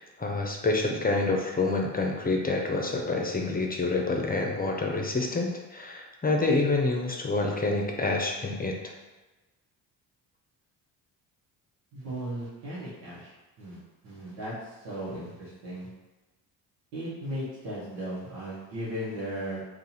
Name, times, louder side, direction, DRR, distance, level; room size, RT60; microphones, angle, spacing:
voice 1, 0.0-8.8, left 3 dB, 20° left, 0 dB, 0.7 m, -27 dB
voice 2, 11.9-13.3 13.6-15.9 16.9-19.6, right 1 dB, 90° right, -8 dB, 1.2 m, -36 dB
2.7 x 2.7 x 4.1 m, 1.1 s
supercardioid pair, 60°, 46 cm